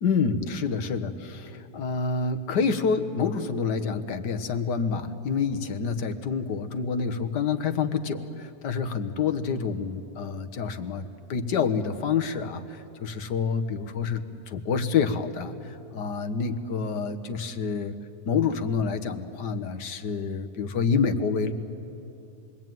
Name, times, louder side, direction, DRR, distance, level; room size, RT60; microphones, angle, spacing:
voice 1, 0.0-18.0 18.3-21.5, left 5 dB, 90° left, 8 dB, 1.9 m, -28 dB
27.5 x 23.0 x 9.2 m, 2.8 s
omnidirectional pair, 1.8 m